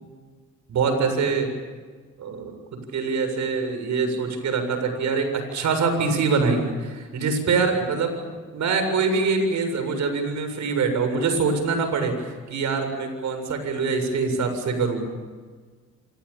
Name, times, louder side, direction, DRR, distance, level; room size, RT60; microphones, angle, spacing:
voice 1, 0.7-1.5 2.2-15.1, right 4 dB, 70° right, 7 dB, 7.4 m, -24 dB
27.5 x 27.5 x 7.2 m, 1.5 s
cardioid pair, 90°, 30 cm